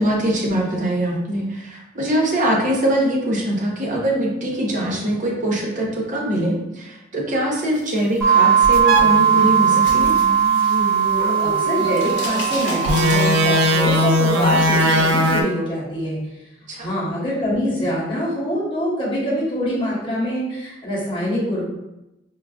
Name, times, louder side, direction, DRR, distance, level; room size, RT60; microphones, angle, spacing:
voice 1, 0.0-10.2 16.7-16.9, right 1 dB, 40° right, -2 dB, 0.7 m, -22 dB
sound 1, 8.2-14.7, right 8 dB, 5° left, 0.7 m, -19 dB
sound 2, 8.6-15.4, equal, 75° right, 0.4 m, -21 dB
sound 3, 9.4-11.1 11.3-13.8, left 2 dB, 60° left, 0.9 m, -32 dB
voice 2, 11.1-16.2 16.8-21.6, equal, 25° left, -7 dB, 1.0 m, -24 dB
4.5 x 2.4 x 2.3 m, 0.93 s
head